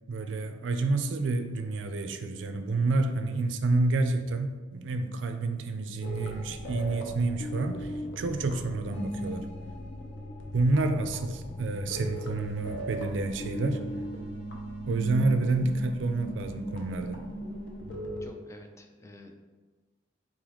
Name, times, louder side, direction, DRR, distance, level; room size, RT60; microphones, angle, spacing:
voice 1, 0.1-9.5 10.5-13.8 14.9-17.2, right 2 dB, 85° right, 7 dB, 0.4 m, -29 dB
sound 1, 6.0-18.3, equal, 90° left, 0.7 m, -38 dB
voice 2, 18.2-19.3, left 2 dB, 15° left, 3 dB, 0.4 m, -49 dB
3.9 x 3.1 x 3.8 m, 1.3 s
head